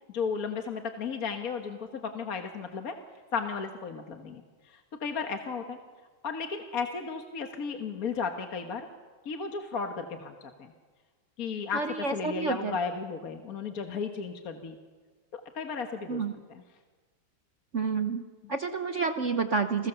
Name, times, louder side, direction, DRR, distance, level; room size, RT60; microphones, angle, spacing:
voice 1, 0.1-2.9 3.3-4.4 4.7-5.8 6.2-8.9 9.3-10.7 11.4-11.8 12.1-14.8 15.3-16.6, left 5 dB, 45° left, 5 dB, 1.6 m, -34 dB
voice 2, 11.7-12.8 16.1-16.3 17.7-19.9, right 4 dB, 55° right, 7 dB, 0.8 m, -29 dB
29.5 x 21.0 x 6.9 m, 1.4 s
omnidirectional pair, 2.4 m